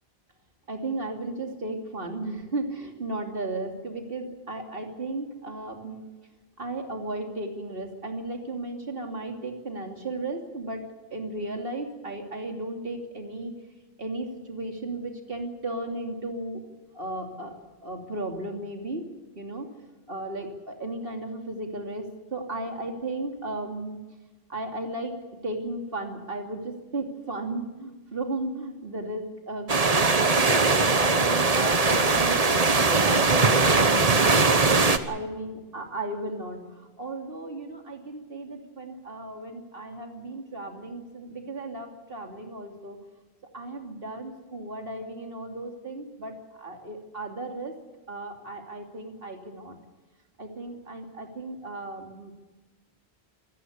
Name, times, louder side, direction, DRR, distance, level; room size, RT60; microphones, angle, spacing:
voice 1, 0.7-6.0 6.6-10.8 11.1-13.5 14.0-16.6 16.9-19.1 19.3-19.7 20.1-22.1 22.3-24.0 24.5-25.1 25.4-43.0 43.5-47.8 48.1-49.8 50.4-52.3, right 2 dB, 65° right, 3 dB, 3.1 m, -35 dB
sound 1, 29.7-35.0, right 3 dB, 35° right, 1.3 m, -21 dB
26.0 x 14.0 x 8.5 m, 1.2 s
omnidirectional pair, 1.1 m